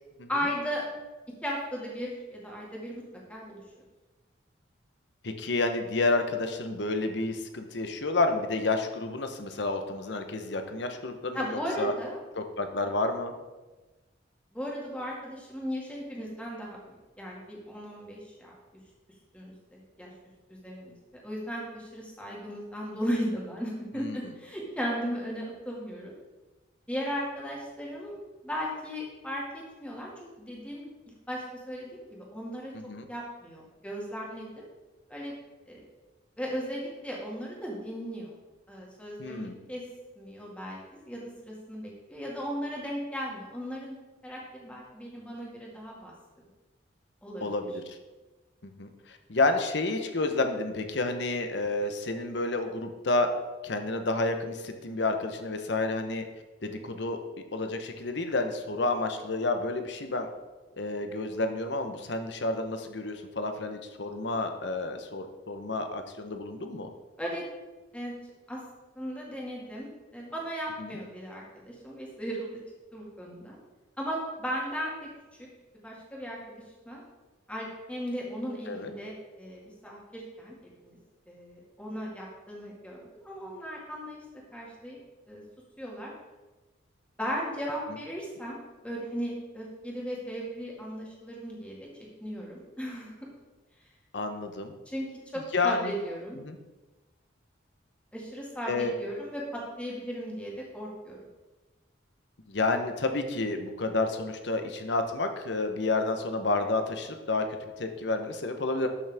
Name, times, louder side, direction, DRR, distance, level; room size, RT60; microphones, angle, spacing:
voice 1, 0.3-0.9 1.4-3.0 3.3-3.6 11.3-12.2 14.5-18.5 19.3-20.1 20.5-20.9 21.2-26.1 26.9-28.1 28.4-32.7 33.1-34.7 35.1-35.3 35.7-35.8 36.4-38.3 38.7-39.8 40.2-40.8 41.1-44.0 44.2-46.1 47.2-47.5 67.2-67.4 67.9-68.1 68.5-68.6 69.0-72.6 72.9-73.6 74.0-75.1 75.8-76.6 76.9-77.0 77.5-81.0 81.3-84.2 84.5-85.0 85.3-85.4 85.8-86.1 87.2-91.8 92.2-93.1 94.9-96.4 98.1-101.2, equal, 5° left, -3 dB, 2.0 m, -36 dB
voice 2, 5.2-11.9 12.3-13.3 23.9-24.2 32.7-33.0 39.2-39.6 47.4-48.0 48.6-53.3 53.6-56.2 56.6-57.2 57.5-60.3 60.8-66.9 70.8-70.9 78.7-78.9 94.1-94.7 95.5-95.9 96.4-96.6 98.7-98.9 102.5-108.9, left 2 dB, 60° left, 6 dB, 0.9 m, -30 dB
12.5 x 6.2 x 3.5 m, 1.2 s
head